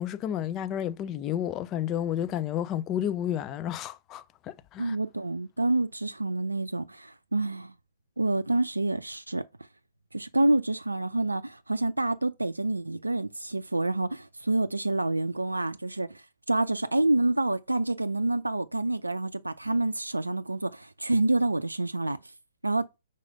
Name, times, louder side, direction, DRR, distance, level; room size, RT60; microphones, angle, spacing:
voice 1, 0.0-5.0, left 10 dB, 25° left, 0.4 m, -31 dB
voice 2, 4.8-7.7 8.2-9.4 10.1-22.3 22.6-22.9, right 2 dB, 85° right, 0.4 m, -28 dB
4.8 x 4.1 x 5.1 m
figure-of-eight pair, 120°, 0 cm